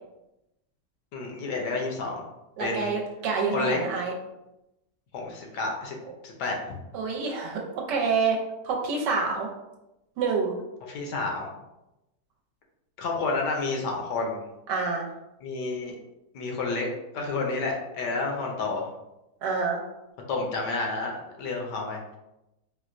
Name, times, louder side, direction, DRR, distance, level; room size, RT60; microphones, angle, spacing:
voice 1, 1.1-2.2 2.6-2.9 3.5-3.8 5.1-6.0 6.2-6.8 10.9-11.5 13.0-14.4 15.4-16.0 16.3-16.9 17.1-18.9 20.3-22.0, left 3 dB, 75° left, 0 dB, 1.2 m, -30 dB
voice 2, 2.6-4.1 6.9-8.4 8.6-9.5 10.2-10.5 14.7-15.1 19.4-19.8, right 4 dB, 80° right, 0 dB, 1.3 m, -27 dB
4.4 x 2.1 x 2.5 m, 0.93 s
omnidirectional pair, 1.9 m